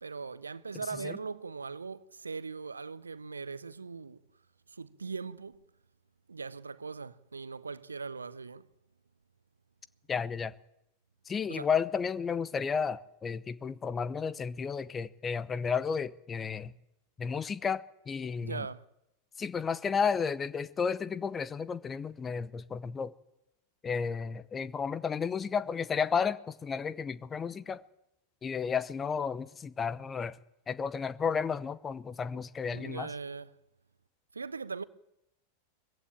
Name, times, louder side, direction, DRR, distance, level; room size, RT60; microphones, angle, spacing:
voice 1, 0.0-4.2 4.7-5.6 6.3-8.7 11.5-11.7 18.4-18.8 32.7-33.6 34.3-34.8, right 4 dB, 75° right, 0.7 m, -40 dB
voice 2, 10.1-10.5 11.3-16.7 17.2-18.6 19.4-23.1 23.8-27.8 28.4-30.4 30.7-33.1, left 6 dB, 20° left, 0.8 m, -32 dB
20.5 x 15.5 x 8.9 m
figure-of-eight pair, 90°, 0 cm